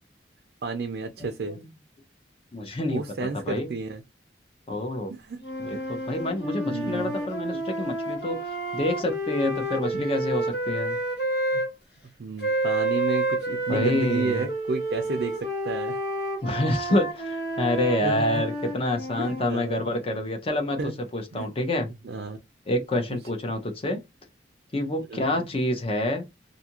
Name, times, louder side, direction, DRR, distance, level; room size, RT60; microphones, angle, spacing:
voice 1, 0.6-1.6 2.9-4.0 5.3-5.4 6.6-7.1 9.9-10.0 11.5-11.6 12.2-16.0 18.0-18.4 19.2-19.8 20.8-20.9 21.3-21.5 22.1-22.4 25.1-25.2, right 3 dB, 60° right, 0.4 m, -31 dB
voice 2, 1.2-1.7 2.5-3.7 4.7-5.1 5.6-11.0 13.7-14.5 16.4-21.9 22.7-24.0 24.7-26.2, left 1 dB, 35° left, 0.7 m, -27 dB
sound 1, 5.4-11.7 12.4-19.5, right 1 dB, 75° left, 1.3 m, -30 dB
2.7 x 2.4 x 2.9 m
head